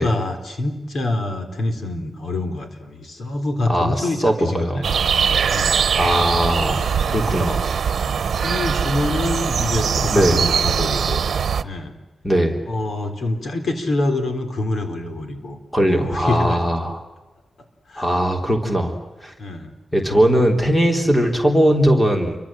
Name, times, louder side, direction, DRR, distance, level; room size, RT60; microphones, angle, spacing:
voice 1, 0.0-4.8 5.5-5.9 7.3-7.5 8.4-11.2 11.6-11.9 12.7-16.6 17.9-18.2 19.4-19.7, left 2 dB, 60° left, 5 dB, 4.0 m, -26 dB
voice 2, 3.7-4.8 5.7-7.6 10.1-10.4 12.2-12.6 15.7-17.0 18.0-19.0 19.2-19.3 19.9-22.4, equal, 10° left, 3 dB, 3.6 m, -19 dB
sound 1, 4.8-11.6, right 7 dB, 80° right, 1.0 m, -21 dB
29.0 x 24.0 x 7.7 m, 1.2 s
wide cardioid pair, 160°, 0 cm